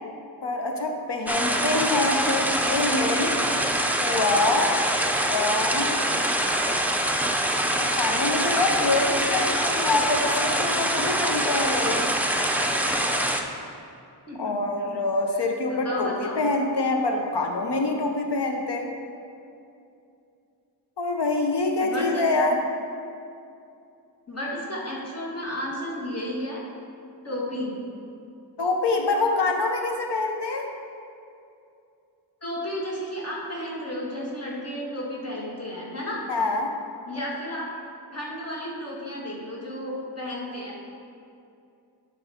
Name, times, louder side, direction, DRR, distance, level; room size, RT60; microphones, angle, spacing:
voice 1, 0.4-3.3 4.0-4.7 5.2-5.9 7.8-12.1 14.4-16.1 16.4-18.9 21.0-22.6 28.6-30.7 36.3-36.7, left 2 dB, 75° left, 2 dB, 0.9 m, -25 dB
sound 1, 1.3-13.4, right 1 dB, 5° right, 0.5 m, -24 dB
voice 2, 14.3-14.6 15.3-16.4 21.8-22.3 24.3-26.6 27.2-27.8 32.4-36.2 37.1-37.7 38.1-40.8, left 1 dB, 35° left, -5 dB, 1.8 m, -33 dB
12.0 x 4.7 x 3.6 m, 2.6 s
wide cardioid pair, 70°, 42 cm